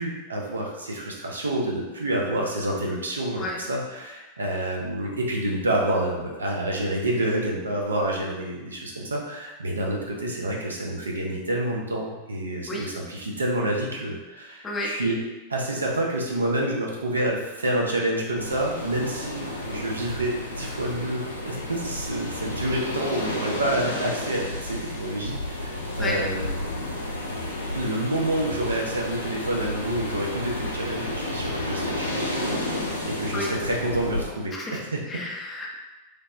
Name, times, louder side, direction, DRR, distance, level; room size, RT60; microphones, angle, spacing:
voice 1, 0.0-15.2 15.5-26.5 27.7-35.0, right 1 dB, 75° right, -2 dB, 0.5 m, -28 dB
sound 1, 18.4-34.2, left 1 dB, 80° left, 0.4 m, -31 dB
voice 2, 34.5-35.7, left 2 dB, 20° left, -2 dB, 0.5 m, -31 dB
3.3 x 2.0 x 2.4 m, 1.1 s
figure-of-eight pair, 90°, 0 cm